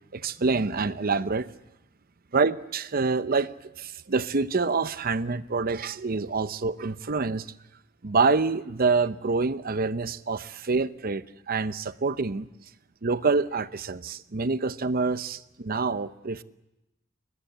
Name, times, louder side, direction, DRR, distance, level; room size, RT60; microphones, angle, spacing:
voice 1, 0.1-1.5 2.3-3.5 3.8-7.5 8.0-12.5 13.0-16.4, right 4 dB, 50° right, 0.7 m, -26 dB
22.0 x 20.5 x 8.1 m
head